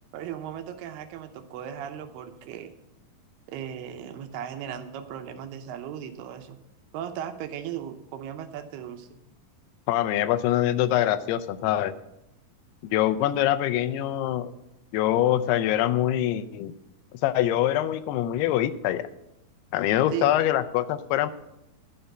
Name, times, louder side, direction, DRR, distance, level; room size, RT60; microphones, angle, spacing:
voice 1, 0.1-2.7 3.5-6.6 6.9-9.1 20.1-20.4, right 10 dB, 80° right, 8 dB, 2.8 m, -37 dB
voice 2, 9.9-11.9 12.9-14.5 14.9-16.7 17.2-19.1 19.7-21.3, left 12 dB, 85° left, 11 dB, 2.7 m, -24 dB
12.5 x 5.5 x 7.8 m, 0.87 s
omnidirectional pair, 4.5 m